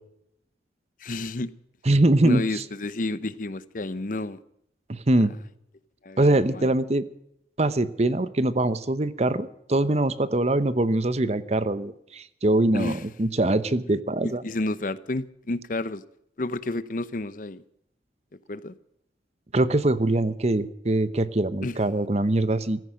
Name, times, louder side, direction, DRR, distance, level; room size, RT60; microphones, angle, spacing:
voice 1, 1.0-1.5 2.2-4.4 6.0-6.7 12.7-13.0 14.2-16.0 16.4-17.6 18.5-18.7 21.6-21.7, left 2 dB, 50° left, 0.8 m, -30 dB
voice 2, 1.9-2.6 4.9-5.3 6.2-7.0 7.6-14.4 19.5-22.8, right 1 dB, 35° right, 0.9 m, -23 dB
15.5 x 14.5 x 6.4 m
head